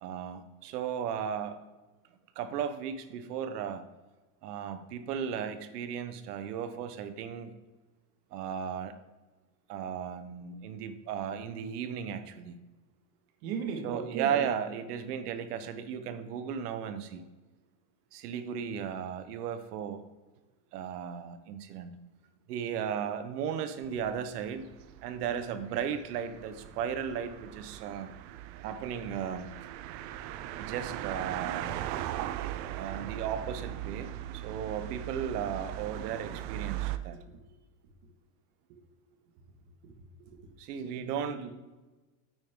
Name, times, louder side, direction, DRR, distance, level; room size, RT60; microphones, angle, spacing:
voice 1, 0.0-1.6 2.3-3.8 4.4-7.6 8.3-8.9 9.7-12.6 13.8-17.2 18.1-20.0 20.7-21.9 22.5-24.7 25.0-28.1 28.6-29.5 30.6-31.8 32.8-37.2 40.6-41.4, right 8 dB, 90° right, 10 dB, 1.2 m, -35 dB
voice 2, 13.4-14.5 37.1-37.2 39.8-39.9 40.3-40.4 40.8-41.5, right 6 dB, 65° right, 4 dB, 1.9 m, -37 dB
sound 1, 23.8-37.0, right 13 dB, 40° right, 0.5 m, -39 dB
9.2 x 8.9 x 3.7 m, 1.2 s
supercardioid pair, 155°, 45 cm